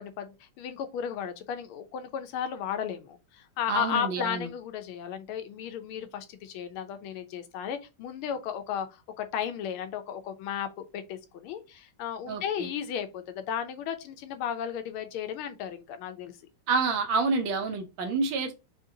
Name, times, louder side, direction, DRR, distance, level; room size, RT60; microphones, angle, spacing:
voice 1, 0.0-16.4, left 9 dB, 85° left, 1.5 m, -34 dB
voice 2, 3.7-4.5 12.3-12.7 16.7-18.5, right 4 dB, 70° right, 1.5 m, -28 dB
5.0 x 2.7 x 2.7 m
omnidirectional pair, 2.3 m